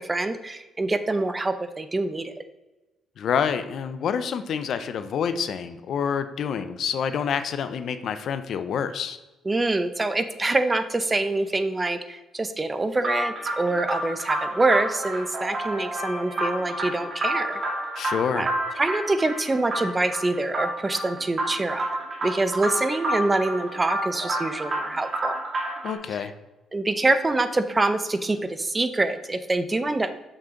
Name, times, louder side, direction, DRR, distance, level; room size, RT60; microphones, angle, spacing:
voice 1, 0.0-2.3 9.5-17.6 18.3-18.5 18.8-21.9 22.2-25.4 26.1-26.3 26.7-30.2, right 2 dB, 20° right, 11 dB, 0.6 m, -25 dB
voice 2, 3.2-9.2 18.0-18.5 25.8-26.3, left 7 dB, 65° left, 11 dB, 0.5 m, -27 dB
sound 1, 13.0-26.0, right 1 dB, 45° right, 2.2 m, -30 dB
6.6 x 6.1 x 3.7 m, 1.1 s
cardioid pair, 90°, 0 cm